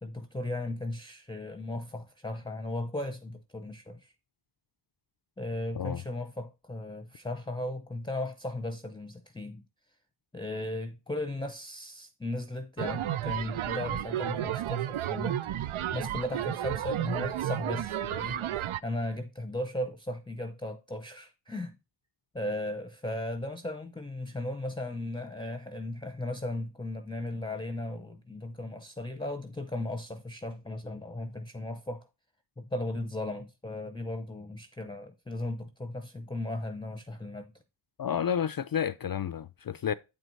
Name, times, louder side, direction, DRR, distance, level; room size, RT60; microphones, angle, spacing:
voice 1, 0.0-4.1 5.4-9.6 10.3-21.8 22.3-32.0 32.6-37.5, left 1 dB, 10° left, 0.7 m, -36 dB
sound 1, 12.8-18.8, right 12 dB, 80° right, 0.6 m, -32 dB
voice 2, 38.0-39.9, left 8 dB, 50° left, 0.5 m, -30 dB
8.8 x 4.6 x 3.9 m
wide cardioid pair, 90°, 48 cm